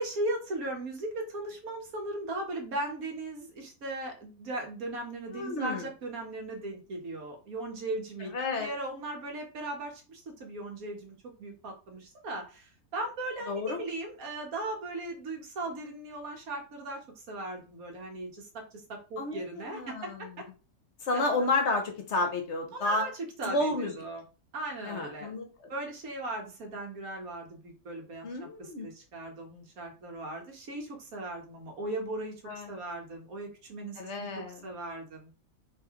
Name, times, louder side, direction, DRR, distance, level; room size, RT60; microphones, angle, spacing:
voice 1, 0.0-8.3 8.6-20.3 21.1-21.2 22.7-23.1 23.4-24.2 24.5-25.3 25.7-28.3 28.6-32.3 32.7-35.3, right 2 dB, 70° right, 1 dB, 1.6 m, -38 dB
voice 2, 5.3-5.9 8.2-8.7 13.5-13.8 19.2-20.3 21.0-23.1 23.4-23.9 24.8-25.7 28.2-28.9 32.5-32.7 34.0-34.7, left 2 dB, 55° left, 4 dB, 1.0 m, -31 dB
3.3 x 3.2 x 3.6 m, 0.35 s
omnidirectional pair, 1.6 m